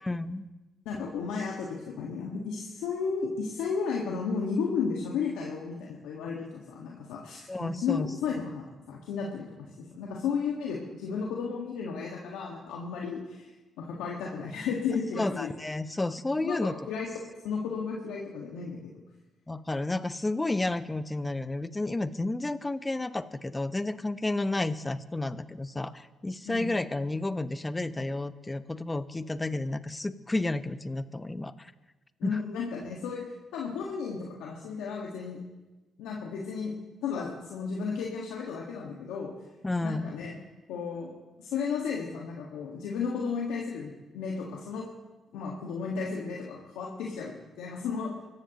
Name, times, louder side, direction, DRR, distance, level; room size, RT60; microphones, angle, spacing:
voice 1, 0.0-0.5 7.5-8.1 15.2-16.7 19.5-31.7 32.2-32.4 39.6-40.2, left 2 dB, 20° left, 13 dB, 0.9 m, -31 dB
voice 2, 0.8-13.5 13.8-15.5 16.4-17.1 17.4-19.0 26.4-26.7 32.2-35.4 36.0-36.8 37.0-39.3 39.8-40.3 40.7-41.1 41.4-44.9 45.3-48.1, left 5 dB, 85° left, -2 dB, 1.7 m, -33 dB
25.0 x 14.5 x 3.0 m, 1.1 s
supercardioid pair, 50°, 0 cm